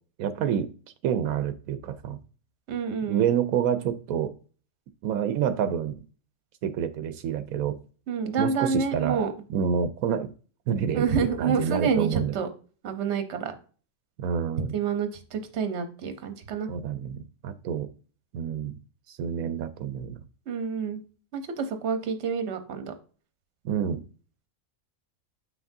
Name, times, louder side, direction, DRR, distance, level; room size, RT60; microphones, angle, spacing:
voice 1, 0.2-0.7 1.0-2.2 3.1-4.3 5.0-5.9 6.6-7.8 8.4-9.2 9.5-10.3 10.7-11.0 11.4-12.3 14.2-14.7 16.7-17.9 18.3-18.8 19.1-20.2 23.6-24.0, right 8 dB, 90° right, 11 dB, 1.1 m, -28 dB
voice 2, 2.7-3.3 8.1-9.3 10.9-12.5 12.8-13.5 14.7-16.7 20.5-21.0 21.3-22.9, right 6 dB, 60° right, 8 dB, 1.1 m, -28 dB
7.6 x 5.9 x 2.7 m, 0.39 s
omnidirectional pair, 1.4 m